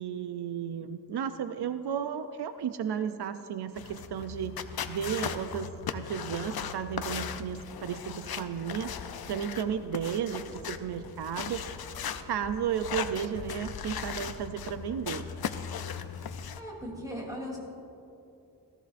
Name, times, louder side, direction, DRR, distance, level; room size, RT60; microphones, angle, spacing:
voice 1, 0.0-4.6 4.9-11.6 12.2-15.3, right 8 dB, 80° right, 10 dB, 0.5 m, -34 dB
sound 1, 3.8-16.6, left 7 dB, 70° left, 0.6 m, -38 dB
voice 2, 16.6-17.6, equal, 10° right, -3 dB, 3.1 m, -38 dB
17.5 x 14.0 x 2.6 m, 2.8 s
wide cardioid pair, 120°, 39 cm